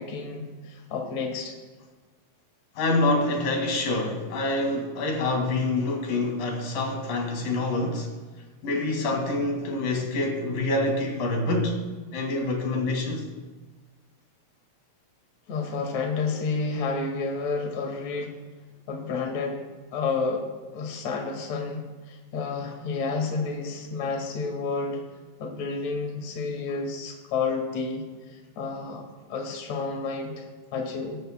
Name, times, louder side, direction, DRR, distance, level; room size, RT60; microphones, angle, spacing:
voice 1, 0.0-1.5 15.5-18.4 18.9-19.6 19.9-20.5 20.7-21.8 22.1-25.0 25.4-29.0 29.3-31.2, left 4 dB, 55° left, 1 dB, 3.0 m, -30 dB
voice 2, 2.8-8.1 8.6-11.8 12.1-13.3, left 2 dB, 85° left, 1 dB, 3.8 m, -26 dB
24.5 x 13.5 x 2.2 m, 1.3 s
omnidirectional pair, 3.8 m